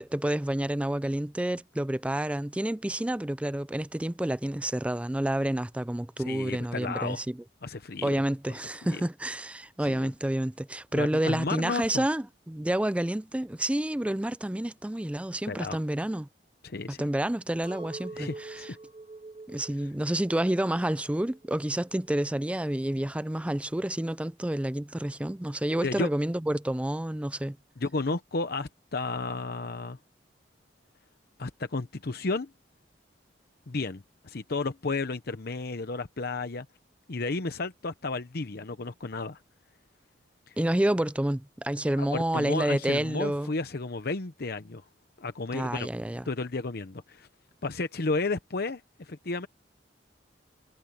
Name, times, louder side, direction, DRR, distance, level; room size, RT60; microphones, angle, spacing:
voice 1, 0.0-7.4 8.0-16.3 17.0-18.7 19.5-27.6 40.6-43.5 45.5-46.2, right 1 dB, 5° right, 0.4 m, -29 dB
voice 2, 6.3-7.2 7.6-8.2 8.9-9.0 9.9-10.1 10.9-12.0 15.5-15.8 16.6-17.0 18.1-18.8 19.8-19.9 25.8-26.1 27.8-30.0 31.4-32.5 33.7-36.7 37.1-39.4 40.5-40.6 42.0-44.8 45.2-45.9 46.3-47.3 47.6-49.5, left 3 dB, 60° left, 0.9 m, -33 dB
Chink clink, 17.6-22.8, right 3 dB, 30° right, 1.9 m, -46 dB
head